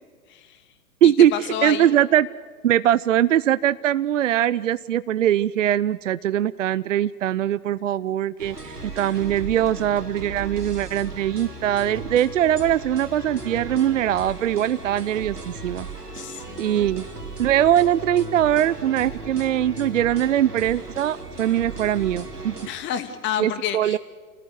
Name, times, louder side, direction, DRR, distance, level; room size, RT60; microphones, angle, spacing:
voice 1, 0.3-0.6 1.0-1.9 16.1-16.9 22.7-24.0, left 10 dB, 25° left, 9 dB, 2.4 m, -30 dB
voice 2, 1.0-1.3 1.6-2.3 2.6-15.9 16.6-17.0 17.4-22.5 23.4-24.0, right 11 dB, 55° right, 17 dB, 0.7 m, -21 dB
sound 1, 8.4-22.7, right 2 dB, 90° right, 3.8 m, -36 dB
29.0 x 18.5 x 9.6 m, 1.5 s
figure-of-eight pair, 115°, 45 cm